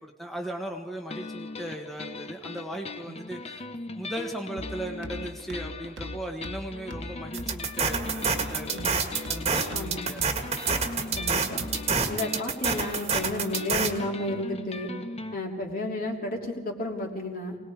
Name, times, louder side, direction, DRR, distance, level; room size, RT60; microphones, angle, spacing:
voice 1, 0.0-3.7 3.9-8.7 9.3-10.2, right 1 dB, ahead, 1 dB, 1.3 m, -37 dB
sound 1, 1.1-15.4, left 3 dB, 35° left, 0.9 m, -39 dB
sound 2, 4.6-12.1, left 1 dB, 80° right, 1.5 m, -42 dB
sound 3, 7.3-13.9, right 5 dB, 35° right, 1.7 m, -27 dB
voice 2, 8.5-8.9 9.7-10.1 11.2-11.6 12.1-14.9 15.3-17.6, left 1 dB, 50° left, 0 dB, 3.1 m, -32 dB
28.0 x 19.5 x 4.9 m, 1.3 s
head